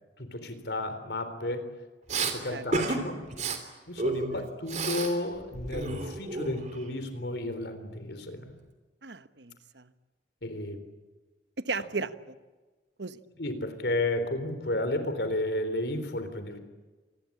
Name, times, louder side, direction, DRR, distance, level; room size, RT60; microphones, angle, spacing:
voice 1, 0.2-1.7 2.2-3.2 3.9-8.5 10.4-10.8 13.4-16.6, left 1 dB, 70° left, 10 dB, 3.8 m, -32 dB
Respiratory sounds, 2.1-2.3 2.7-3.0 3.3-3.6 4.0-5.1 5.4-6.8, right 3 dB, 40° right, 3.3 m, -31 dB
voice 2, 2.5-2.9 4.3-4.4 9.0-9.9 11.6-12.4 13.0-13.2, right 4 dB, 80° right, 12 dB, 1.2 m, -36 dB
27.0 x 20.5 x 8.7 m, 1.3 s
head